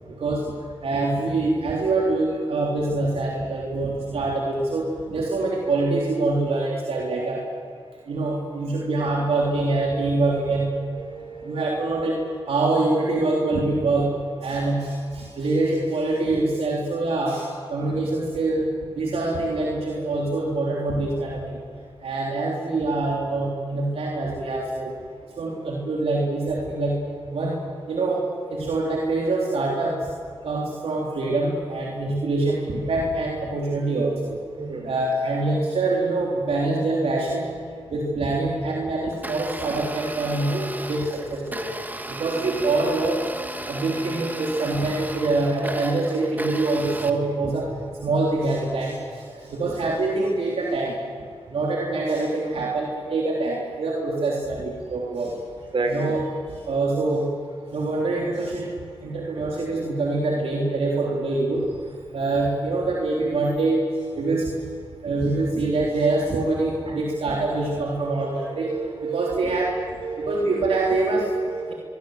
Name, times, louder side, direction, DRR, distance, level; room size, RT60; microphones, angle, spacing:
voice 1, 0.8-7.4 8.1-10.7 11.4-12.2 12.5-14.1 14.4-18.7 19.0-21.6 22.0-24.9 25.4-27.0 27.3-30.1 30.4-34.4 34.8-37.5 37.9-41.7 42.1-43.2 43.7-47.7 48.0-51.0 51.5-55.3 55.9-56.2 56.7-57.3 57.7-58.7 59.0-61.6 62.1-64.5 65.0-68.8 69.0-69.7 70.2-71.3, right 2 dB, 75° right, -3 dB, 3.5 m, -25 dB
voice 2, 8.6-9.2 9.9-11.8 34.6-34.9 41.5-41.8 42.1-42.6 55.7-56.1 66.9-67.0 68.0-69.7 70.0-71.7, right 3 dB, 60° right, 3 dB, 5.4 m, -34 dB
Domestic sounds home sounds, 39.1-47.1, right 1 dB, 15° right, 2.2 m, -35 dB
24.5 x 22.5 x 7.9 m, 2.3 s
cardioid pair, 50°, 10 cm